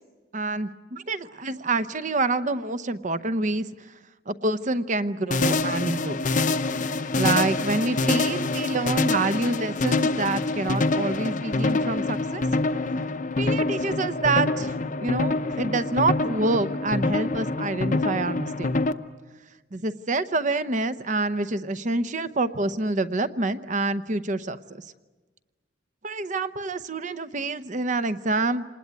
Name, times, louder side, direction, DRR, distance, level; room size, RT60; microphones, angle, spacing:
voice 1, 0.3-3.7 4.3-6.2 6.9-12.4 13.4-14.8 15.0-18.7 19.7-24.8 26.0-28.6, right 2 dB, 40° right, 12 dB, 0.8 m, -27 dB
sound 1, 5.3-18.9, left 3 dB, 40° left, 0.8 m, -26 dB
26.5 x 20.0 x 9.5 m, 1.3 s
head